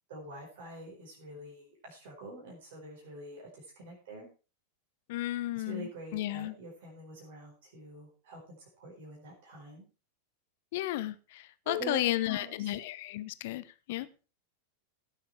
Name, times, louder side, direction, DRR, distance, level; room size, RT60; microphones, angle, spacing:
voice 1, 0.1-4.3 5.5-9.8 11.6-12.7, right 1 dB, 55° right, -2 dB, 4.7 m, -45 dB
voice 2, 5.1-6.5 10.7-11.1 11.7-13.6 13.9-14.1, left 16 dB, 50° left, 15 dB, 0.9 m, -33 dB
17.5 x 6.9 x 4.5 m, 0.34 s
figure-of-eight pair, 90°, 0 cm